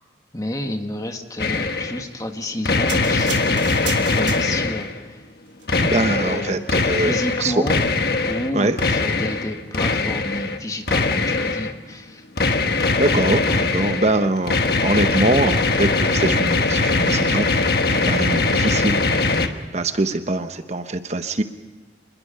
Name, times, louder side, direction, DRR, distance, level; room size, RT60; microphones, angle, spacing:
voice 1, 0.3-5.2 6.2-6.6 6.9-7.9 8.2-12.2, left 1 dB, 20° left, 5 dB, 1.6 m, -30 dB
sound 1, 1.4-2.0 2.7-5.0 5.7-8.5 8.8-10.6 10.9-11.7 12.4-19.5, left 3 dB, 60° left, 1.3 m, -21 dB
sound 2, 2.9-4.9 5.5-5.7, right 8 dB, 85° right, 2.9 m, -33 dB
voice 2, 5.8-7.6 8.5-8.8 13.0-19.3 19.7-21.4, right 2 dB, 40° right, 9 dB, 0.9 m, -23 dB
26.0 x 21.0 x 5.6 m, 1.3 s
head